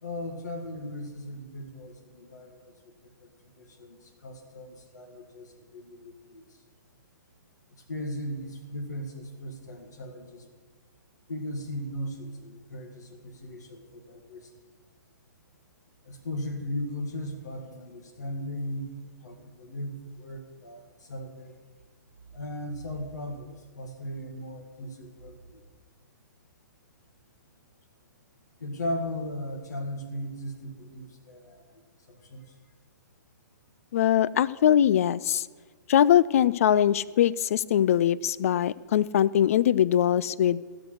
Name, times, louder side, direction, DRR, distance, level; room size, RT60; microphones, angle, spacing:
voice 1, 0.0-2.7 3.2-3.3 3.6-6.4 7.9-10.4 11.3-14.5 16.1-18.9 19.2-21.6 22.3-25.6 28.6-31.6 32.1-32.4 40.7-40.8, left 1 dB, 65° left, 5 dB, 1.9 m, -37 dB
voice 2, 33.9-35.4 35.9-40.6, left 10 dB, 50° left, 21 dB, 0.3 m, -22 dB
15.0 x 6.5 x 6.4 m, 1.4 s
figure-of-eight pair, 115°, 10 cm